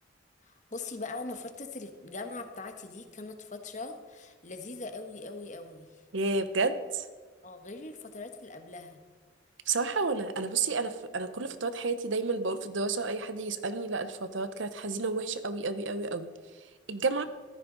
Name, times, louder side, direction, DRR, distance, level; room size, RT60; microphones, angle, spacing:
voice 1, 0.4-6.0 7.4-9.0, left 3 dB, 40° left, 6 dB, 1.3 m, -41 dB
voice 2, 6.1-7.1 9.7-16.3 16.9-17.2, right 3 dB, 90° right, 11 dB, 0.9 m, -31 dB
14.5 x 13.5 x 4.0 m, 1.4 s
head